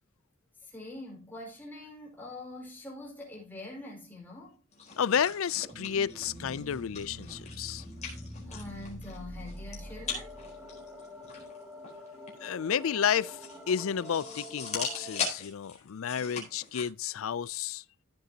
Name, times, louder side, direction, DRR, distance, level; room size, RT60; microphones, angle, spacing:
voice 1, 0.6-4.6 8.5-10.3, left 2 dB, 10° left, 5.0 m, -44 dB
sound 1, 4.7-16.8, left 5 dB, 30° left, 4.1 m, -41 dB
voice 2, 5.0-7.8 12.4-17.8, left 8 dB, 70° left, 0.4 m, -31 dB
sound 2, 5.7-15.3, equal, 5° right, 2.4 m, -45 dB
15.0 x 7.9 x 2.8 m
head